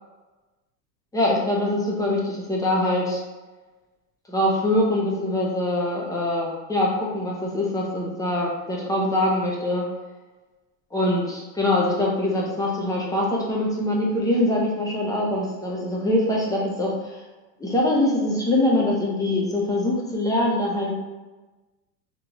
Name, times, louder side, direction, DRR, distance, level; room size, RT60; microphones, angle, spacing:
voice 1, 1.1-3.2 4.3-9.8 10.9-17.2 17.6-21.0, left 1 dB, 5° left, -3 dB, 0.6 m, -23 dB
3.8 x 2.9 x 2.9 m, 1.2 s
supercardioid pair, 120°, 50 cm